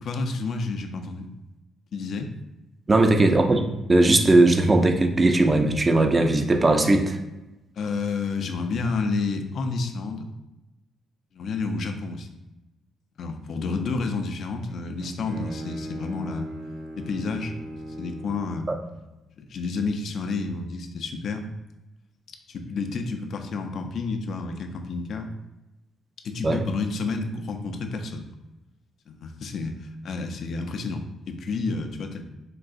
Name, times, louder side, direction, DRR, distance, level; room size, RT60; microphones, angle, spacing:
voice 1, 0.0-1.3 1.9-2.3 7.8-10.3 11.3-12.3 13.2-16.5 17.0-17.5 18.0-18.7 19.4-21.4 22.5-25.3 26.2-28.3 29.1-32.2, left 4 dB, 65° left, 5 dB, 0.4 m, -30 dB
voice 2, 2.9-3.6 3.9-7.2 18.7-18.8 26.4-26.6, right 2 dB, 25° right, 6 dB, 0.4 m, -19 dB
Bowed string instrument, 14.7-18.8, equal, 60° right, 0.9 m, -38 dB
3.7 x 2.3 x 2.5 m, 1.0 s
cardioid pair, 90°, 0 cm